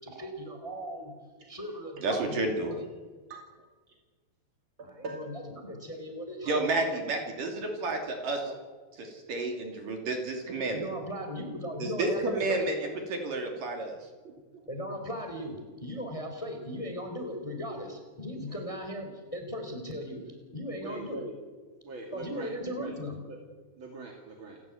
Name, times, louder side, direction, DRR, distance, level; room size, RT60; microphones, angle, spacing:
voice 1, 0.0-1.1 1.5-2.5 4.8-6.9 10.7-12.7 14.7-21.2 22.1-23.2, equal, 10° left, 5 dB, 3.2 m, -38 dB
voice 2, 2.0-2.8 6.5-8.4 9.0-10.8 11.8-12.8 13.1-14.0, right 2 dB, 55° right, 3 dB, 4.3 m, -30 dB
voice 3, 4.8-5.3 6.9-7.0 8.4-8.6 14.2-14.7 20.8-21.4 21.8-23.0 23.2-23.4 23.8-24.6, right 3 dB, 40° right, 2 dB, 2.2 m, -42 dB
28.5 x 13.0 x 9.3 m, 1.4 s
omnidirectional pair, 4.9 m